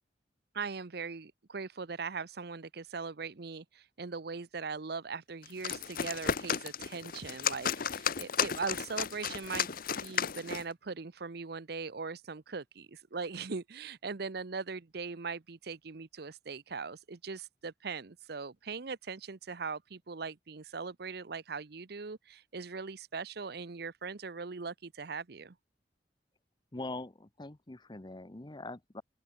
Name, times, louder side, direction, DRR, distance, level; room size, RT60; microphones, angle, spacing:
voice 1, 0.5-9.7 10.0-25.5, right 4 dB, 65° right, 0.8 m, -40 dB
sound 1, 5.4-10.7, left 7 dB, 55° left, 1.0 m, -34 dB
voice 2, 26.7-29.0, left 2 dB, 25° left, 1.0 m, -43 dB
open air
head